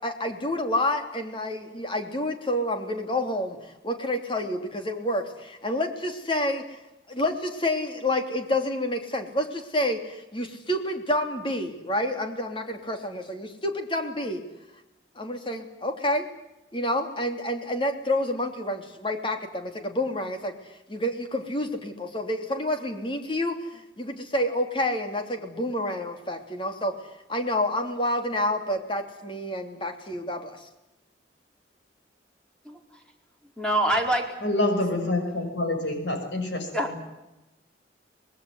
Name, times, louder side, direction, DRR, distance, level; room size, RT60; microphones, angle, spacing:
voice 1, 0.0-6.8 7.1-14.4 15.1-16.3 16.7-20.5 20.9-26.9 27.3-30.7, left 1 dB, 30° left, 5 dB, 3.2 m, -29 dB
voice 2, 33.6-34.3 36.7-37.0, right 1 dB, 5° left, 1 dB, 4.5 m, -25 dB
voice 3, 34.4-37.0, left 2 dB, 80° left, 5 dB, 6.4 m, -27 dB
25.0 x 20.0 x 9.6 m, 0.95 s
head